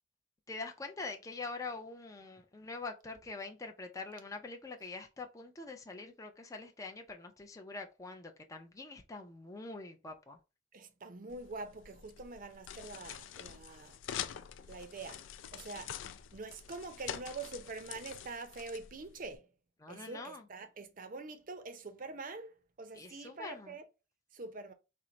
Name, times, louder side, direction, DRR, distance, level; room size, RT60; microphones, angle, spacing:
voice 1, 0.5-10.4 19.8-20.5 22.9-23.8, left 3 dB, 15° left, 0.5 m, -44 dB
voice 2, 10.7-14.0 14.7-15.2 15.5-16.0 16.3-19.5 19.9-23.8 24.3-24.7, right 3 dB, 45° right, 0.6 m, -45 dB
sound 1, 11.3-19.4, left 9 dB, 75° left, 0.3 m, -46 dB
4.4 x 2.1 x 3.8 m
head